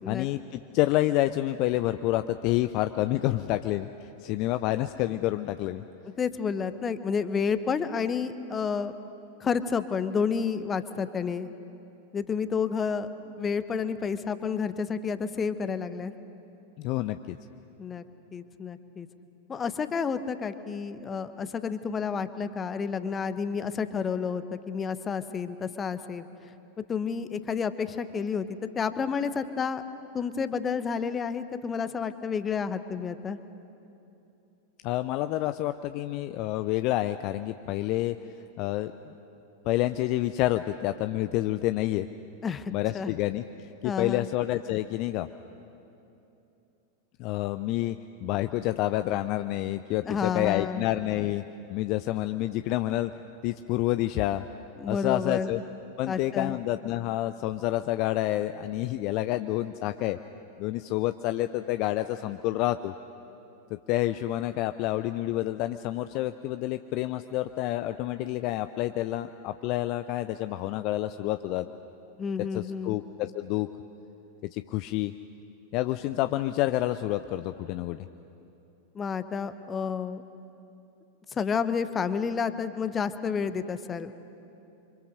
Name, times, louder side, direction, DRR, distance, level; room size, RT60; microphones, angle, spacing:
voice 1, 0.1-5.8 16.8-17.4 34.8-38.2 38.6-39.1 39.7-42.1 42.7-45.3 47.2-51.4 51.7-53.1 53.4-54.4 54.9-55.6 56.0-60.2 60.6-62.9 63.9-71.7 72.5-73.7 74.5-75.1 75.7-78.1, left 15 dB, 40° left, 10 dB, 0.5 m, -28 dB
voice 2, 6.2-8.9 9.4-11.5 12.1-16.1 17.8-18.0 18.3-19.1 19.5-26.3 26.9-28.5 28.7-29.8 30.1-33.4 42.4-43.1 43.8-44.3 50.0-50.8 54.8-55.6 56.1-56.6 72.2-73.0 78.9-80.2 81.3-84.1, left 6 dB, 20° left, 12 dB, 1.1 m, -30 dB
28.0 x 25.0 x 6.6 m, 2.8 s
figure-of-eight pair, 90°, 0 cm